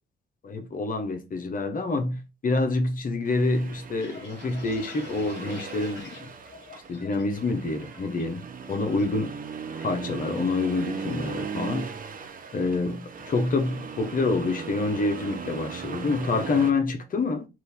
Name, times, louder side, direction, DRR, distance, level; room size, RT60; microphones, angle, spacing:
voice 1, 0.4-6.3 6.9-8.4 8.7-9.3 9.8-11.9 12.5-17.5, left 3 dB, 45° left, 1.2 m, -27 dB
Accelerating revving vroom, 3.2-16.7, right 5 dB, 45° right, 0.9 m, -38 dB
sound 1, 3.7-7.4 7.7-8.2 8.6-9.1 9.3-10.6 10.9-11.2 11.5-12.0, left 5 dB, 60° left, 1.6 m, -47 dB
4.7 x 2.7 x 4.2 m
cardioid pair, 90°, 20 cm